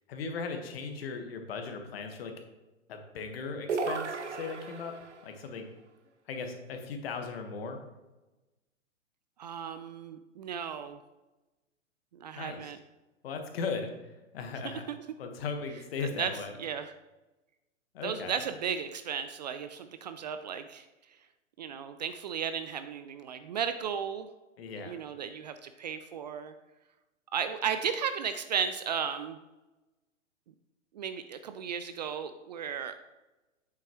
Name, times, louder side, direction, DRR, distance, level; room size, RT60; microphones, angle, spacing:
voice 1, 0.1-2.3 2.9-4.9 5.2-5.7 6.3-7.8 12.4-12.7 13.2-14.8 15.2-16.5 17.9-18.4 24.6-25.0, left 4 dB, 50° left, 5 dB, 1.4 m, -37 dB
sound 1, 3.7-5.2, right 4 dB, 65° right, 1.1 m, -34 dB
voice 2, 9.4-11.0 12.2-12.8 16.0-16.3 16.6-16.9 18.0-20.9 21.6-24.3 24.8-26.5 27.3-29.4 30.9-32.9, right 7 dB, 35° right, 10 dB, 0.4 m, -35 dB
8.4 x 7.4 x 3.0 m, 1.1 s
figure-of-eight pair, 115°, 37 cm